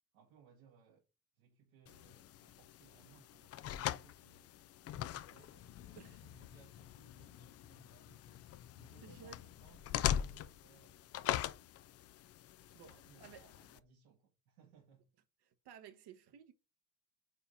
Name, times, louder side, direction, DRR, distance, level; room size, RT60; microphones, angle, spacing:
voice 1, 0.1-1.0 1.3-4.5 4.9-8.5 8.8-11.6 12.8-15.1, right 6 dB, 70° right, 1.8 m, -66 dB
sound 1, 1.9-13.8, left 11 dB, 35° left, 0.4 m, -42 dB
voice 2, 9.0-9.4 12.7-13.5 15.4-16.5, right 8 dB, 55° right, 1.2 m, -56 dB
4.9 x 4.0 x 4.8 m
hypercardioid pair, 75°, 48 cm